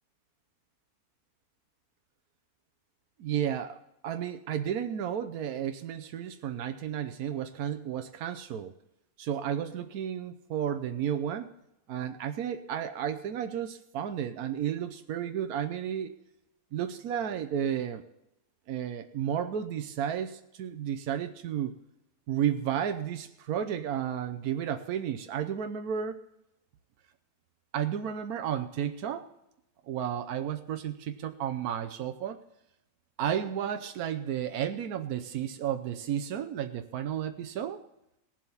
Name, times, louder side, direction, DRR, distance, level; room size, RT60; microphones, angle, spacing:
voice 1, 3.2-8.7 9.2-11.5 11.9-16.1 16.7-18.0 18.7-21.7 22.3-26.2 27.7-29.3 29.9-32.4 33.2-37.8, right 9 dB, 80° right, 7 dB, 1.3 m, -32 dB
18.5 x 7.5 x 5.5 m, 0.83 s
omnidirectional pair, 1.5 m